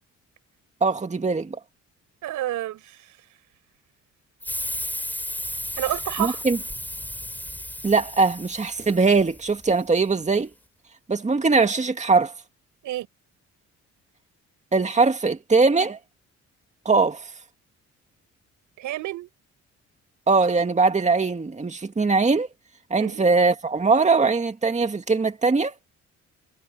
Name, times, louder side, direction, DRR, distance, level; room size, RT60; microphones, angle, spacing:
voice 1, 0.8-1.6 6.2-6.6 7.8-10.5 11.1-12.3 14.7-16.0 16.9-17.3 20.3-22.5 22.9-25.7, right 4 dB, 25° right, 2.1 m, -21 dB
voice 2, 2.2-3.0 5.8-6.4 12.8-13.1 18.8-19.3 23.0-23.2, right 14 dB, 85° right, 5.8 m, -29 dB
sound 1, 4.4-9.7, left 1 dB, 5° left, 5.8 m, -34 dB
cardioid pair, 90°, 30 cm